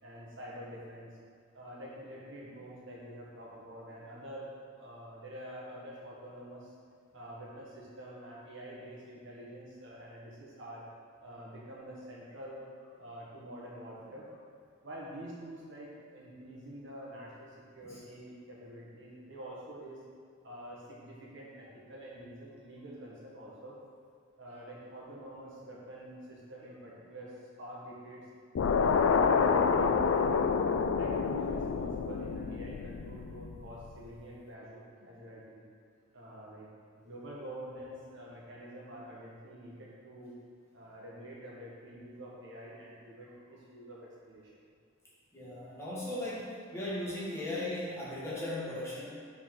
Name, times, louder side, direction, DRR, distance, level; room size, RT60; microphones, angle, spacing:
voice 1, 0.0-1.1 1.5-6.7 7.1-10.8 11.2-12.6 13.0-14.3 14.8-20.0 20.4-23.8 24.4-28.2 28.7-30.5 31.0-35.6 36.1-36.7 37.0-40.3 40.7-44.6, right 1 dB, 65° right, -5 dB, 1.5 m, -47 dB
sound 1, 28.6-33.8, left 5 dB, 70° left, 0.3 m, -28 dB
voice 2, 45.3-49.0, left 1 dB, 15° left, -9 dB, 1.6 m, -37 dB
5.3 x 4.0 x 5.8 m, 2.2 s
head